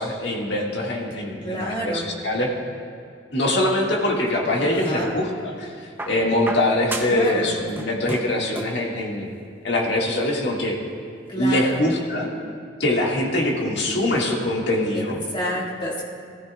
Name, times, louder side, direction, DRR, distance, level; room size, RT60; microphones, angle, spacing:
voice 1, 0.0-2.5 3.3-9.3 9.6-10.8 11.4-12.3 12.8-15.2, left 1 dB, 65° left, -2 dB, 1.8 m, -23 dB
voice 2, 1.4-2.1 4.6-5.1 7.1-7.5 11.3-11.9 14.9-15.0 15.3-16.0, equal, 25° left, -5 dB, 2.0 m, -29 dB
sound 1, 4.2-5.2 6.0-7.3 7.6-8.9 9.9-10.0, right 2 dB, 10° right, 0.6 m, -34 dB
18.5 x 14.0 x 2.3 m, 2.4 s
head